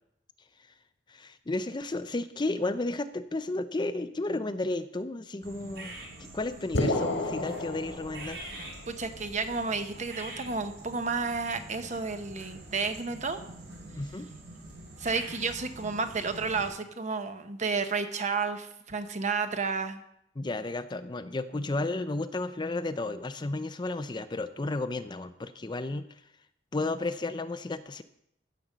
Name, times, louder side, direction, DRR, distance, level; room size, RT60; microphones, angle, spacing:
voice 1, 1.1-8.4 14.0-14.4 20.4-26.0 26.7-28.0, left 2 dB, 25° left, 11 dB, 0.5 m, -33 dB
sound 1, 5.4-16.7, right 2 dB, 65° right, 4.2 m, -45 dB
sound 2, 6.7-8.7, left 1 dB, 75° left, 1.7 m, -31 dB
voice 2, 8.6-13.4 15.0-20.0, right 4 dB, 40° right, 8 dB, 1.0 m, -31 dB
15.0 x 5.3 x 7.3 m, 0.77 s
head